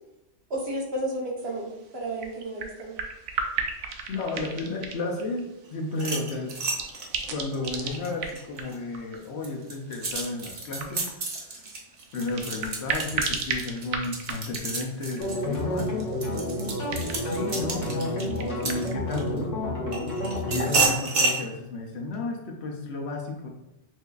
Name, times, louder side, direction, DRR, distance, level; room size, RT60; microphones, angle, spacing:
voice 1, 0.5-2.9, right 1 dB, 55° right, -2 dB, 1.1 m, -32 dB
sound 1, 1.4-19.0, right 5 dB, 75° right, 0.9 m, -37 dB
voice 2, 4.1-6.6 7.3-11.6 12.1-15.9 17.2-19.4 20.5-23.5, left 2 dB, 65° left, 2 dB, 0.9 m, -33 dB
sound 2, 5.9-8.8 9.2-19.4 19.9-21.4, right 3 dB, 40° right, 0.6 m, -30 dB
sound 3, 15.2-20.9, left 1 dB, 85° left, 1.6 m, -30 dB
6.0 x 2.6 x 2.4 m, 0.91 s
omnidirectional pair, 1.3 m